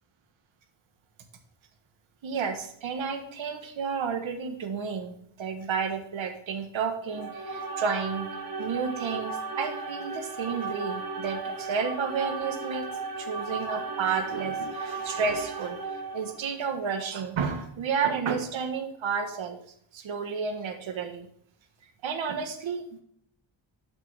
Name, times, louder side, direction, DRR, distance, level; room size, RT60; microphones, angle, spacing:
voice 1, 2.2-8.3 8.6-12.9 13.2-19.6 19.9-21.3 22.0-23.0, right 5 dB, 70° right, 6 dB, 1.5 m, -31 dB
sound 1, 7.0-16.5, right 4 dB, 45° right, 1.4 m, -35 dB
11.5 x 6.1 x 3.6 m, 0.69 s
wide cardioid pair, 160°, 49 cm